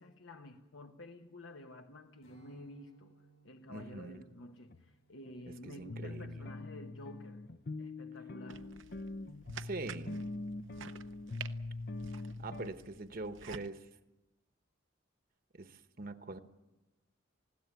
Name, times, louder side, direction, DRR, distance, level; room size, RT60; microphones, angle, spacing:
voice 1, 0.0-7.5 7.8-8.7, left 1 dB, 70° left, 1.1 m, -51 dB
Strum, 2.2-7.6, right 5 dB, 85° left, 7.3 m, -67 dB
voice 2, 3.7-4.2 5.5-6.4 9.6-10.3 12.4-13.9 15.5-16.4, right 2 dB, 45° right, 1.1 m, -43 dB
sound 1, 4.1-4.2 4.7-4.8 5.3-5.4 5.9-12.7, left 2 dB, 50° left, 0.7 m, -43 dB
sound 2, 8.5-13.7, right 6 dB, 70° right, 0.8 m, -50 dB
20.5 x 16.5 x 9.8 m
head